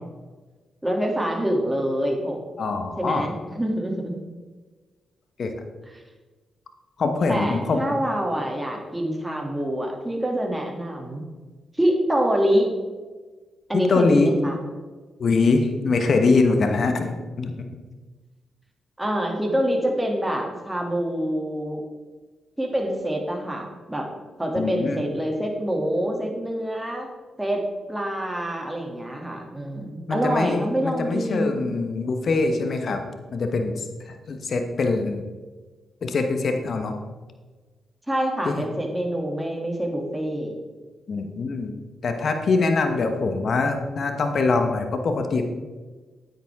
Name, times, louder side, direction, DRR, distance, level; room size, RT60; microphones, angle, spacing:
voice 1, 0.8-2.4 3.0-4.2 7.3-11.2 11.7-12.7 13.7-14.6 19.0-21.8 22.6-24.1 24.4-27.1 27.4-27.6 27.9-31.7 38.1-40.5, equal, 15° right, 0 dB, 2.6 m, -26 dB
voice 2, 2.6-3.2 5.4-5.5 7.0-7.8 13.7-14.3 15.2-17.5 24.6-25.0 30.1-33.1 33.3-35.3 36.0-36.9 38.4-38.6 41.1-41.7 42.0-45.5, left 3 dB, 60° left, 6 dB, 1.1 m, -23 dB
9.2 x 9.2 x 3.6 m, 1.3 s
supercardioid pair, 50°, 0 cm